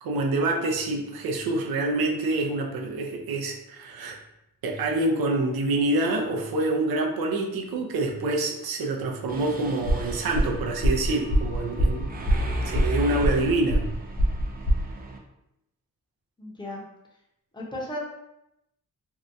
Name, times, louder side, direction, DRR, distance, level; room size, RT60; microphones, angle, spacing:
voice 1, 0.0-4.2 4.6-12.2 12.6-13.9, right 2 dB, 85° right, 1 dB, 0.5 m, -26 dB
Mechanisms, 9.3-15.2, right 1 dB, 25° right, 0.3 m, -35 dB
sound 1, 9.8-14.8, equal, 55° left, 0.7 m, -25 dB
voice 2, 16.4-16.8 17.5-18.0, left 1 dB, 15° left, -3 dB, 0.7 m, -35 dB
2.6 x 2.2 x 2.5 m, 0.86 s
cardioid pair, 90°, 35 cm